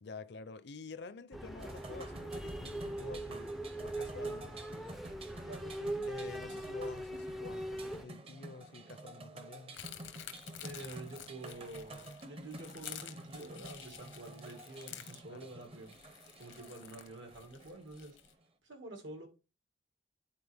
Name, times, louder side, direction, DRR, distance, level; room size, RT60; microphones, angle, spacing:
voice 1, 0.0-3.5 3.8-4.6 6.1-9.8 15.3-15.5, left 4 dB, 60° left, 0.5 m, -49 dB
sound 1, 1.3-8.0, right 1 dB, ahead, 0.4 m, -41 dB
sound 2, 1.6-18.4, right 1 dB, 30° right, 0.7 m, -51 dB
voice 2, 5.4-6.6 10.6-16.0 16.4-18.2 18.6-19.3, right 2 dB, 80° right, 2.0 m, -48 dB
sound 3, 9.7-18.3, left 11 dB, 85° left, 0.9 m, -50 dB
9.9 x 4.2 x 3.4 m
head